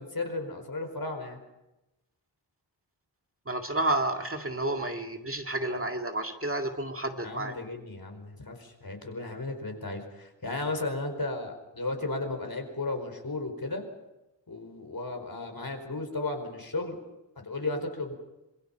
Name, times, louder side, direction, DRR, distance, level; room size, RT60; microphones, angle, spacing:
voice 1, 0.0-1.4 7.2-13.8 14.5-17.0 17.4-18.1, left 2 dB, 50° left, 5 dB, 4.8 m, -34 dB
voice 2, 3.5-7.5, right 1 dB, 30° right, 4 dB, 2.1 m, -30 dB
27.0 x 22.0 x 5.7 m, 0.96 s
wide cardioid pair, 80°, 44 cm